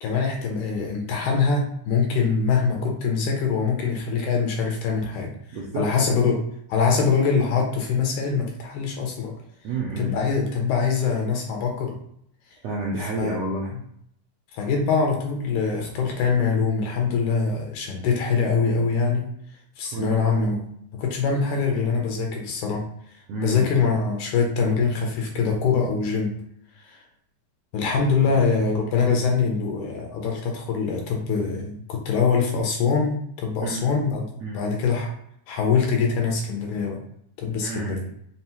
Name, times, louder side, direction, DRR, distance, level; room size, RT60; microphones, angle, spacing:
voice 1, 0.0-5.3 5.8-6.4 6.7-9.3 10.0-12.0 13.0-13.4 13.7-13.8 14.5-19.3 19.8-20.7 21.0-22.8 23.4-26.3 26.8-27.0 27.7-35.1 35.5-37.0 37.4-38.0, left 5 dB, 80° left, 1 dB, 2.0 m, -23 dB
voice 2, 5.5-5.9 9.6-10.2 12.6-13.7 19.9-20.2 23.3-23.7 28.3-28.4 33.6-33.9 34.4-34.6 37.6-38.0, right 3 dB, 85° right, -4 dB, 1.5 m, -30 dB
5.4 x 2.0 x 2.9 m, 0.71 s
omnidirectional pair, 3.6 m